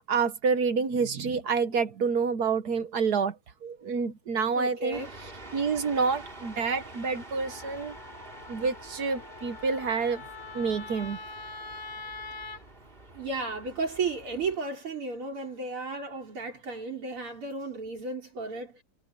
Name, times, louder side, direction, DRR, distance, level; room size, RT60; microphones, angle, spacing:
voice 1, 0.0-3.3 3.6-5.0 5.5-7.9 8.5-10.2 10.5-11.2, right 5 dB, 55° right, 1.4 m, -28 dB
voice 2, 4.6-5.1 13.1-18.8, right 3 dB, 75° right, 5.4 m, -34 dB
sound 1, 4.9-14.6, right 2 dB, 25° right, 3.1 m, -47 dB
Wind instrument woodwind instrument, 7.5-12.6, left 4 dB, 60° left, 2.6 m, -43 dB
omnidirectional pair, 2.4 m